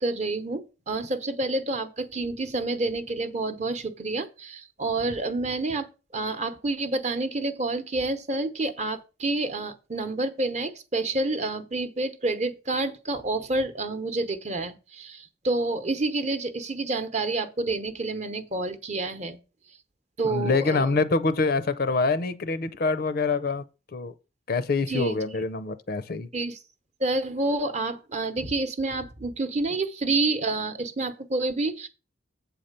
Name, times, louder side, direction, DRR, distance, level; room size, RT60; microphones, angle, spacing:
voice 1, 0.0-5.9 6.1-19.4 20.2-21.0 24.9-25.2 26.3-26.6 27.0-31.9, right 2 dB, 35° right, 0.8 m, -28 dB
voice 2, 20.2-23.6 23.9-24.1 24.5-26.3, left 3 dB, 50° left, 0.5 m, -25 dB
8.1 x 4.3 x 6.6 m
head